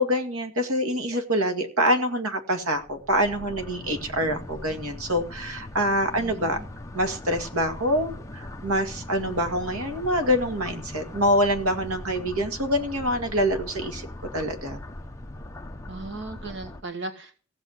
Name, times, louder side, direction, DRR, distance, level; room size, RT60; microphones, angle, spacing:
voice 1, 0.0-6.6 6.9-14.1 14.3-14.8, equal, 80° right, 6 dB, 2.2 m, -25 dB
sound 1, 2.7-16.8, left 1 dB, 15° left, 0.8 m, -40 dB
voice 2, 6.1-6.6 15.9-17.4, right 2 dB, 55° right, 5 dB, 1.7 m, -37 dB
16.0 x 7.0 x 7.9 m, 0.40 s
head